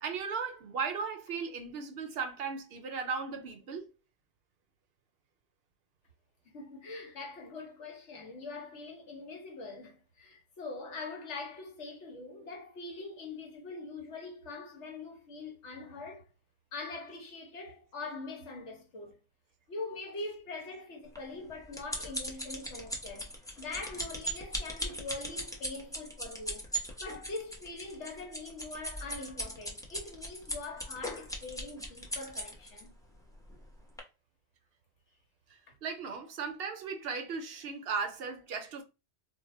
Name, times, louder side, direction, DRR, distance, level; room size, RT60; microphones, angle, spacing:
voice 1, 0.0-3.9 35.5-38.8, right 5 dB, 65° right, 0.8 m, -36 dB
voice 2, 6.4-16.2 16.7-19.2 19.7-23.3 23.6-26.7 27.0-32.9 35.7-35.8, left 3 dB, 80° left, 1.3 m, -43 dB
sound 1, 21.2-32.8 33.5-33.6 34.0-34.1, equal, 5° left, 0.5 m, -38 dB
2.7 x 2.1 x 4.0 m
omnidirectional pair, 1.2 m